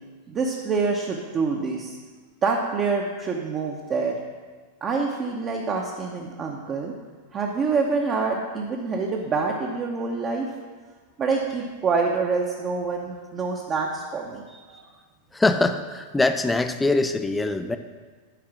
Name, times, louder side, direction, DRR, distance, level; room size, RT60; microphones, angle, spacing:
voice 1, 0.3-2.0 2.4-4.2 4.8-6.9 7.3-10.5 11.2-14.9, right 4 dB, 25° right, 0 dB, 0.8 m, -26 dB
voice 2, 15.3-17.8, left 2 dB, 10° left, 8 dB, 0.5 m, -23 dB
9.1 x 4.8 x 6.1 m, 1.4 s
figure-of-eight pair, 90°, 0 cm